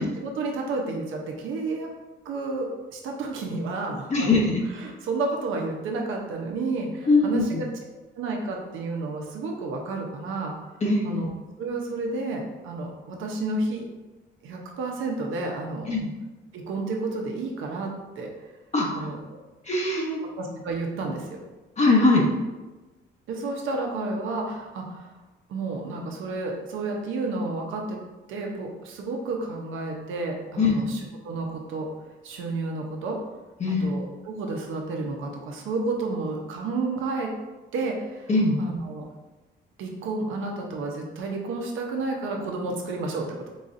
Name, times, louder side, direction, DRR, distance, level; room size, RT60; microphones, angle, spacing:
voice 1, 0.2-1.9 2.2-4.3 4.7-7.7 8.2-10.5 11.0-11.3 11.6-13.9 14.4-15.9 16.5-18.3 18.9-19.4 20.4-21.4 23.3-25.1 25.5-28.0 28.3-31.9 32.2-33.2 33.7-37.3 37.7-38.3 38.6-39.0 39.8-43.5, right 3 dB, 85° right, 1 dB, 0.8 m, -31 dB
voice 2, 4.1-4.6 7.0-7.6 10.8-11.2 15.9-16.1 18.7-19.1 19.6-20.2 21.8-22.2 30.6-30.8 33.6-33.9 38.3-38.6, left 3 dB, 35° left, -2 dB, 0.9 m, -21 dB
4.0 x 3.9 x 2.6 m, 1.1 s
cardioid pair, 90°, 20 cm